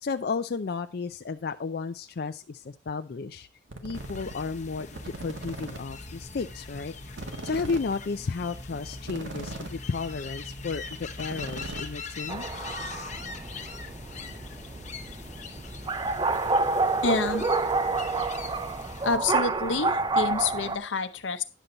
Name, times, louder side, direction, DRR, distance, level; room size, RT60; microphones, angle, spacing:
voice 1, 0.0-3.5 3.8-6.9 7.4-12.5, left 4 dB, 55° left, 8 dB, 0.4 m, -33 dB
sound 1, 3.7-4.3 4.8-5.8 6.1-6.2 6.4-6.5 6.8-6.9 7.1-9.8 10.1-10.3 10.6-10.7 10.9-12.3, right 2 dB, 85° right, 1.7 m, -39 dB
sound 2, 3.9-19.2, left 3 dB, 40° left, 1.0 m, -41 dB
sound 3, 12.3-20.8, right 3 dB, 25° right, 0.5 m, -28 dB
voice 2, 17.0-17.4 19.0-21.4, left 4 dB, 85° left, 10 dB, 0.8 m, -28 dB
10.0 x 6.9 x 3.9 m, 0.31 s
head